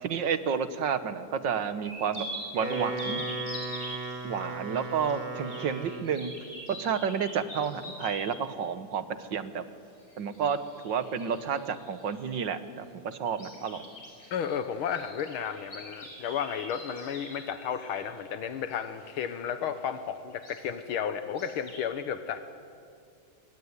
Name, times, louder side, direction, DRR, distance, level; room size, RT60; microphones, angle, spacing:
voice 1, 0.0-2.3 2.5-3.2 4.2-6.3 6.7-9.6 10.2-10.6 10.8-13.8, right 7 dB, 60° right, 12 dB, 1.9 m, -30 dB
sound 1, 1.8-8.4 10.0-12.6 13.2-19.4 19.7-20.0 20.3-20.7 21.2-21.8, equal, 35° left, 7.0 m, -44 dB
Wind instrument woodwind instrument, 2.4-6.3, right 2 dB, 20° right, 2.8 m, -36 dB
voice 2, 14.3-22.4, left 8 dB, 85° left, 10 dB, 1.9 m, -33 dB
25.0 x 22.5 x 9.7 m, 2.4 s
omnidirectional pair, 2.3 m